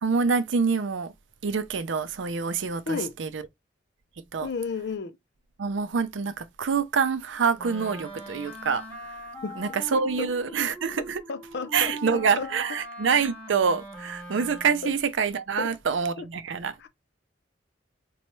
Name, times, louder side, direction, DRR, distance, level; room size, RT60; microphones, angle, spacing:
voice 1, 0.0-1.1 1.4-3.5 4.3-4.5 5.6-9.1 9.6-11.2 11.7-16.8, right 5 dB, 90° right, 0.5 m, -26 dB
voice 2, 4.4-5.2 9.4-9.6 9.9-10.3 11.0-12.5 14.8-14.9 15.6-15.7 16.2-16.3 16.8-16.9, left 4 dB, 65° left, 0.5 m, -33 dB
Wind instrument woodwind instrument, 7.6-15.0, right 1 dB, 10° left, 1.0 m, -41 dB
4.1 x 2.3 x 3.0 m
head